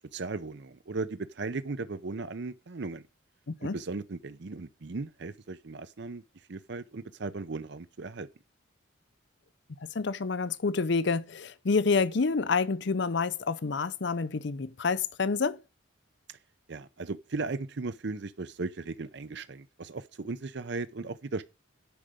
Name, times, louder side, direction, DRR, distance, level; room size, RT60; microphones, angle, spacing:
voice 1, 0.1-3.0 3.6-6.2 6.5-8.3 16.7-21.4, right 3 dB, 55° right, 0.6 m, -37 dB
voice 2, 3.5-3.8 9.9-15.6, left 4 dB, 55° left, 0.6 m, -28 dB
10.5 x 4.9 x 7.7 m
head